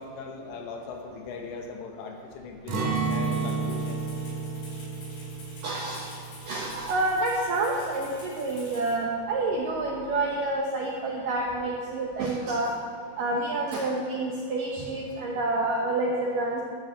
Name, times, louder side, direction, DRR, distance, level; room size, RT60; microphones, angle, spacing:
voice 1, 0.0-4.0, left 4 dB, 75° left, 2 dB, 3.2 m, -40 dB
Acoustic guitar, 2.7-8.6 8.9-9.1 9.5-10.0, right 4 dB, 55° right, 2.7 m, -32 dB
Rattle (instrument), 3.0-9.0, left 2 dB, 50° left, 5.3 m, -49 dB
voice 2, 5.6-6.1 6.5-12.7 13.2-16.6, right 2 dB, 85° right, -1 dB, 1.9 m, -28 dB
12.0 x 8.7 x 7.2 m, 2.2 s
omnidirectional pair, 5.4 m